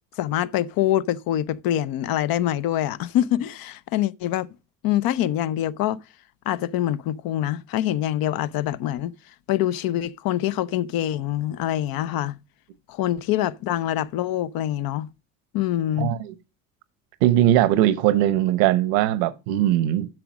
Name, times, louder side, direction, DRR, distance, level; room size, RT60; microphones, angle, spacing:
voice 1, 0.2-4.5 4.8-6.0 6.5-9.1 9.5-12.3 12.9-15.1 15.5-16.1, left 12 dB, 65° left, 0.7 m, -25 dB
voice 2, 16.0-16.3 17.2-20.1, right 13 dB, 85° right, 0.9 m, -20 dB
7.7 x 6.1 x 6.2 m
supercardioid pair, 65°, 38 cm